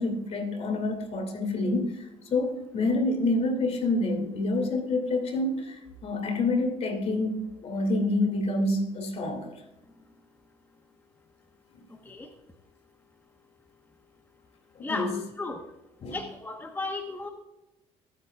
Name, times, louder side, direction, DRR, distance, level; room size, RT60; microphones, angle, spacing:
voice 1, 0.0-9.6 14.8-15.2 16.0-16.2, left 2 dB, 55° left, 2.5 m, -28 dB
voice 2, 14.8-15.6 16.1-17.3, left 3 dB, 15° left, 1.2 m, -34 dB
22.0 x 8.4 x 2.4 m
supercardioid pair, 75°, 13 cm